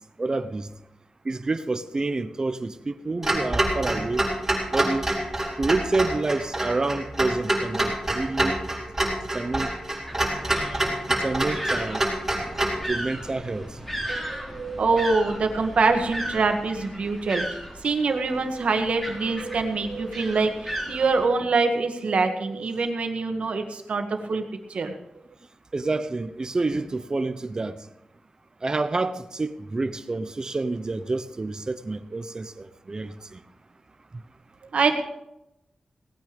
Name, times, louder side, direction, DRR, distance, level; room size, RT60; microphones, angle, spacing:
voice 1, 0.2-0.7 1.2-4.2 4.7-5.1 5.6-8.6 9.3-9.7 11.2-12.0 12.8-13.8 25.7-27.8 28.6-33.4, right 3 dB, 35° right, 12 dB, 0.9 m, -28 dB
Clock, 3.2-12.8, right 1 dB, 15° right, 5.7 m, -26 dB
sound 1, 10.1-21.3, equal, 10° left, 3.6 m, -36 dB
voice 2, 14.1-24.4 24.7-25.0 34.7-35.0, right 4 dB, 75° right, 5 dB, 1.9 m, -25 dB
18.5 x 9.3 x 5.3 m, 0.87 s
wide cardioid pair, 100°, 2 cm